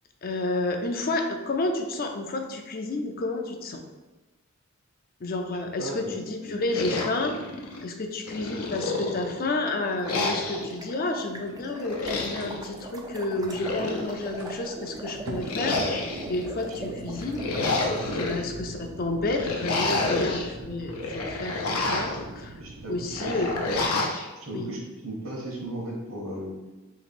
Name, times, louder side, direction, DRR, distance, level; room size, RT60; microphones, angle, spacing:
voice 1, 0.2-3.8 5.2-7.3 7.8-15.8 16.3-17.4 18.2-22.6 22.9-23.8 24.5-24.7, left 2 dB, 40° left, 4 dB, 0.5 m, -30 dB
voice 2, 5.8-6.1 6.4-6.5 22.6-23.4 24.3-26.5, right 1 dB, 65° right, -3 dB, 1.2 m, -36 dB
sound 1, 6.7-7.8 8.3-9.5 10.0-10.8 11.8-12.6 13.4-14.4 15.4-16.4 17.2-18.4 19.3-20.5 20.9-22.2 23.1-24.2, left 3 dB, 90° left, 0.7 m, -29 dB
sound 2, 8.6-23.9, right 1 dB, 80° right, 0.7 m, -42 dB
sound 3, 10.1-18.4, right 2 dB, 15° right, 0.3 m, -41 dB
3.3 x 3.0 x 4.2 m, 1.1 s
head